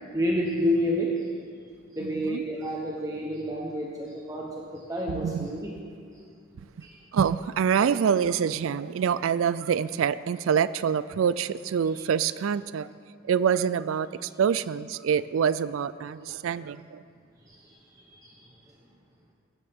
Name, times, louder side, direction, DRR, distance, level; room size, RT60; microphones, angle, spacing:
voice 1, 0.1-1.3 1.9-5.7 6.1-6.2 6.8-7.0 11.9-12.0 17.5-18.5, equal, 15° right, -2 dB, 0.9 m, -30 dB
voice 2, 2.0-2.4 5.1-5.5 7.1-12.9 13.3-17.0, right 7 dB, 75° right, 16 dB, 0.3 m, -26 dB
16.5 x 12.5 x 3.6 m, 2.2 s
head